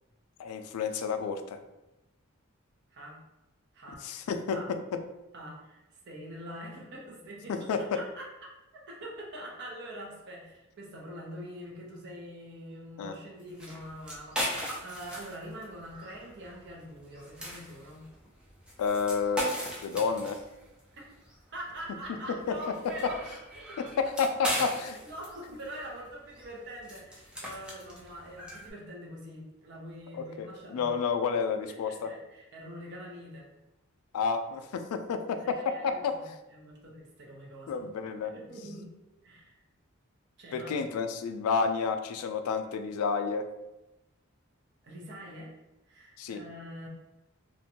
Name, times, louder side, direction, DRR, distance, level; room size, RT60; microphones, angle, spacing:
voice 1, 0.4-1.6 4.0-4.6 7.5-8.0 13.0-13.1 18.8-19.5 19.8-20.4 22.5-22.6 23.0-23.1 24.0-24.9 30.1-32.1 34.1-36.1 37.7-38.3 40.5-43.5 46.2-46.4, left 5 dB, 90° left, 11 dB, 0.3 m, -30 dB
voice 2, 2.9-3.2 3.7-4.0 4.5-4.7 5.3-8.3 8.7-18.1 21.5-23.2 23.5-23.6 24.5-31.0 31.8-33.6 35.4-37.8 38.1-38.9 39.2-39.6 40.4-40.8 44.8-45.5 45.8-46.9, equal, 50° right, -2 dB, 0.6 m, -44 dB
sound 1, 13.4-28.7, equal, 5° right, 0.3 m, -39 dB
2.5 x 2.1 x 2.8 m, 0.99 s
head